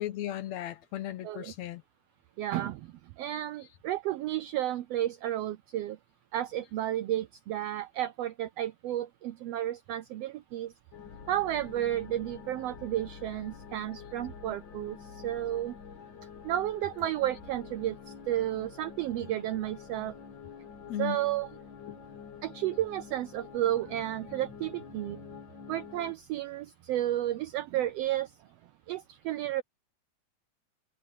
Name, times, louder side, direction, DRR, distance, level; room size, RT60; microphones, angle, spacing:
voice 1, 0.0-1.8 20.9-21.2 21.9-22.0, left 12 dB, 70° left, 2.2 m, -36 dB
voice 2, 2.4-6.0 6.3-10.7 11.3-15.7 16.4-20.1 21.0-21.5 22.4-25.2 25.7-28.3 28.9-29.6, right 13 dB, 80° right, 1.4 m, -32 dB
sound 1, 10.9-26.1, left 6 dB, 45° left, 1.9 m, -47 dB
omnidirectional pair, 3.4 m